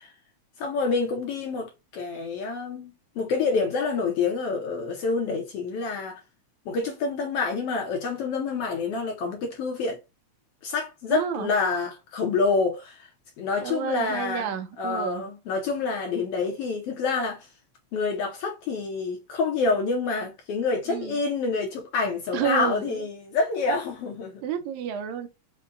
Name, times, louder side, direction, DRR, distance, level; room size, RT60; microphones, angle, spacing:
voice 1, 0.6-6.2 6.7-10.0 10.6-13.1 13.4-17.5 17.9-24.4, left 4 dB, 70° left, 1.6 m, -27 dB
voice 2, 11.1-11.5 13.6-15.3 20.9-21.2 22.3-23.0 24.4-25.3, right 8 dB, 80° right, 2.0 m, -30 dB
5.4 x 2.2 x 3.7 m
omnidirectional pair, 3.3 m